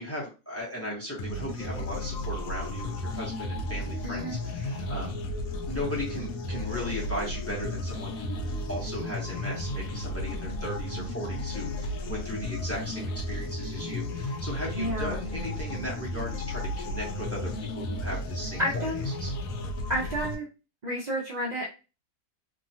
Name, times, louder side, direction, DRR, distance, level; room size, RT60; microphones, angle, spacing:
voice 1, 0.0-5.2 5.5-19.3, equal, 15° left, -4 dB, 0.6 m, -37 dB
sound 1, 1.2-20.3, left 1 dB, 70° left, 1.0 m, -34 dB
voice 2, 4.0-4.4 14.8-15.2 18.6-19.1 19.9-20.5 20.8-21.7, equal, 80° right, -3 dB, 0.3 m, -30 dB
2.9 x 2.3 x 2.7 m, 0.31 s
omnidirectional pair, 1.6 m